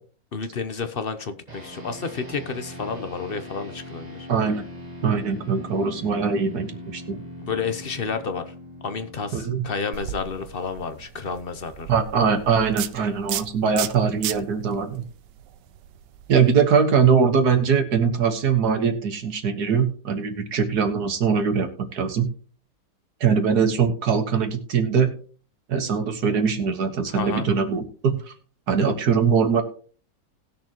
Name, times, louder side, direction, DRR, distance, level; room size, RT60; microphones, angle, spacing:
voice 1, 0.3-4.3 7.4-8.5 8.8-11.9 27.1-27.5, left 5 dB, 50° left, 9 dB, 0.7 m, -30 dB
sound 1, 1.5-11.1, equal, 25° right, 1.6 m, -41 dB
voice 2, 4.3-4.6 5.0-7.2 9.3-9.6 11.9-15.0 16.3-22.3 23.2-25.1 25.7-28.3 28.7-29.6, right 6 dB, 65° right, 7 dB, 1.9 m, -22 dB
sound 2, 9.9-16.5, right 12 dB, 85° right, 1.3 m, -35 dB
19.0 x 6.7 x 3.0 m, 0.41 s
omnidirectional pair, 1.8 m